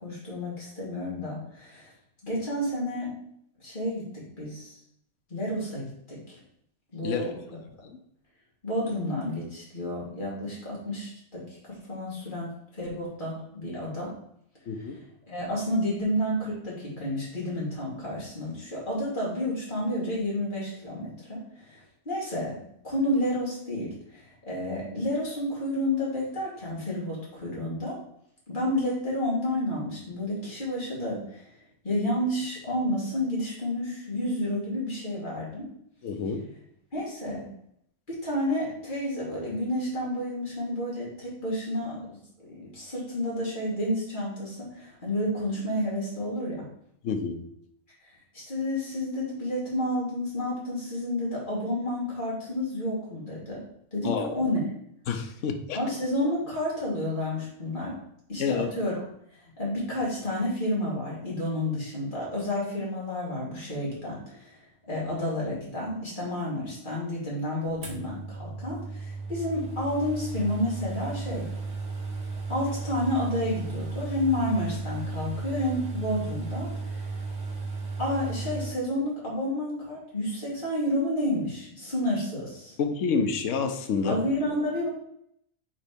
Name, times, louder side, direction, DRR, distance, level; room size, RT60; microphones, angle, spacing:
voice 1, 0.0-1.9 2.2-3.1 3.6-4.8 5.3-6.4 6.9-7.3 8.6-14.1 14.8-14.9 15.3-22.6 22.8-28.0 28.5-31.5 31.8-35.7 36.9-37.5 38.1-42.0 42.5-46.6 48.0-53.6 53.9-54.6 55.7-57.9 58.3-59.0 59.3-71.5 72.5-77.2 78.0-82.7 84.0-84.9, left 1 dB, 35° left, -6 dB, 3.0 m, -30 dB
voice 2, 14.7-15.0 36.0-36.4 47.0-47.4 54.0-54.3 55.1-55.8 58.4-58.7 82.8-84.2, left 5 dB, 60° left, 6 dB, 1.1 m, -28 dB
sound 1, 67.8-78.7, right 4 dB, 55° right, 1.7 m, -35 dB
5.4 x 4.1 x 5.1 m, 0.71 s
omnidirectional pair, 1.5 m